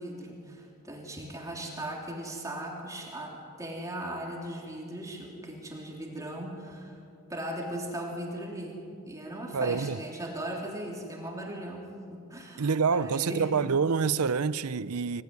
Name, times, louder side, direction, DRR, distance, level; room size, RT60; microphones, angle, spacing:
voice 1, 0.0-7.0 7.3-8.8 9.1-13.5, right 1 dB, 15° right, 3.3 m, -38 dB
voice 2, 9.5-10.0 12.6-15.2, right 5 dB, 80° right, 0.6 m, -27 dB
26.0 x 17.5 x 9.6 m
head